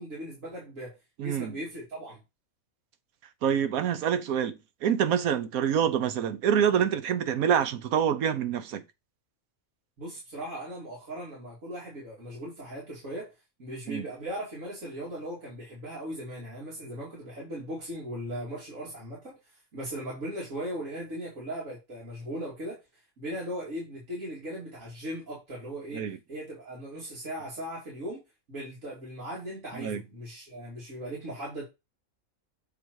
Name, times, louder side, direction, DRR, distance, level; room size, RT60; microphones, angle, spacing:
voice 1, 0.0-2.2 10.0-13.3 13.6-22.8 23.2-26.0 26.3-28.2 28.5-31.6, equal, 65° right, 2.9 m, -38 dB
voice 2, 1.2-1.6 3.4-8.8 13.9-14.1 25.9-26.2 29.7-30.0, right 8 dB, 80° right, 1.2 m, -26 dB
7.2 x 3.9 x 4.6 m
omnidirectional pair, 1.5 m